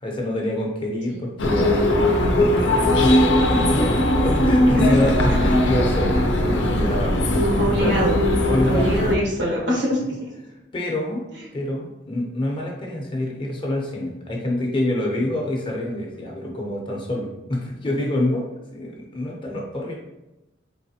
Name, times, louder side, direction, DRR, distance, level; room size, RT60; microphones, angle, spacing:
voice 1, 0.0-4.0 4.2-7.9 8.5-9.1 10.7-11.2 11.5-18.4 18.7-19.9, left 1 dB, 25° left, -1 dB, 0.7 m, -26 dB
sound 1, 1.4-9.1, left 1 dB, 85° left, 0.6 m, -19 dB
voice 2, 4.7-5.0 7.2-8.2 8.7-10.3, equal, 75° right, -4 dB, 1.3 m, -24 dB
3.9 x 3.2 x 2.8 m, 0.97 s
head